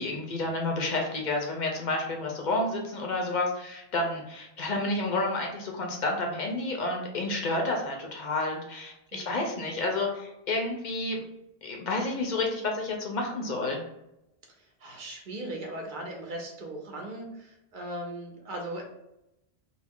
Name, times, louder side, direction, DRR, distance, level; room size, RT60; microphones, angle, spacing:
voice 1, 0.0-11.2 11.6-13.8, left 2 dB, 60° left, 1 dB, 0.6 m, -30 dB
voice 2, 9.1-9.4 14.8-18.8, right 1 dB, 55° right, 0 dB, 0.7 m, -38 dB
2.3 x 2.0 x 3.4 m, 0.86 s
omnidirectional pair, 1.1 m